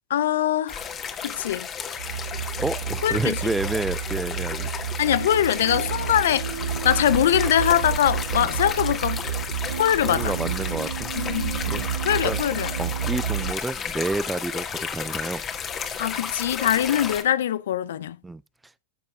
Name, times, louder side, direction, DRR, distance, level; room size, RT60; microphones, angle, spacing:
voice 1, 0.1-0.8 1.2-1.7 3.0-3.4 5.0-9.2 9.8-10.3 11.1-12.7 16.0-18.2, left 11 dB, 75° left, 0.5 m, -23 dB
sound 1, 0.7-17.2, left 7 dB, 30° left, 1.7 m, -33 dB
sound 2, 2.0-13.5, right 9 dB, 80° right, 0.4 m, -30 dB
voice 2, 2.6-4.7 8.4-8.5 10.0-11.1 11.6-11.8 12.2-12.4 12.8-15.4 18.2-18.4, right 2 dB, 10° right, 0.4 m, -29 dB
14.0 x 6.9 x 2.3 m
hypercardioid pair, 95°, 0 cm